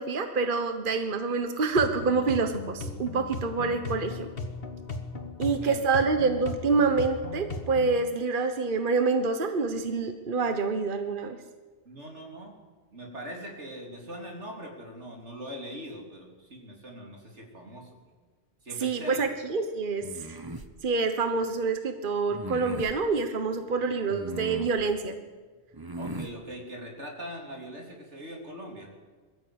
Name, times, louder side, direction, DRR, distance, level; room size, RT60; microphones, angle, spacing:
voice 1, 0.0-4.3 5.4-11.4 18.8-20.4 20.8-25.2, right 4 dB, 50° right, 7 dB, 1.3 m, -27 dB
sound 1, 1.7-8.0, left 2 dB, 55° left, 2.0 m, -37 dB
voice 2, 5.5-6.0 11.9-12.6 12.9-18.0 18.6-19.3 23.8-24.0 25.9-28.9, equal, 85° right, 1 dB, 4.0 m, -42 dB
sound 2, 20.0-20.7 22.3-23.0 24.1-24.8 25.7-26.3, right 2 dB, 20° right, 1.2 m, -38 dB
22.0 x 13.5 x 8.8 m, 1.4 s
omnidirectional pair, 1.2 m